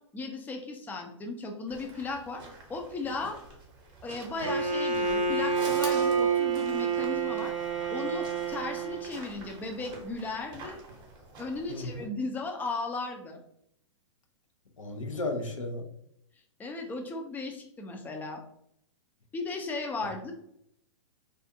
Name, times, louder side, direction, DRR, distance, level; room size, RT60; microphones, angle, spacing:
voice 1, 0.1-2.4 2.7-3.4 4.0-7.5 7.9-10.8 11.4-13.4 16.6-18.4 19.3-20.3, left 3 dB, 10° left, 3 dB, 0.4 m, -36 dB
sound 1, 1.7-12.1, right 3 dB, 25° right, 0.7 m, -47 dB
Bowed string instrument, 4.4-9.2, right 5 dB, 85° right, 0.5 m, -28 dB
voice 2, 11.7-12.1 14.8-15.9, left 2 dB, 90° left, 3 dB, 0.6 m, -34 dB
2.4 x 2.4 x 2.6 m, 0.73 s
hypercardioid pair, 115°, 16 cm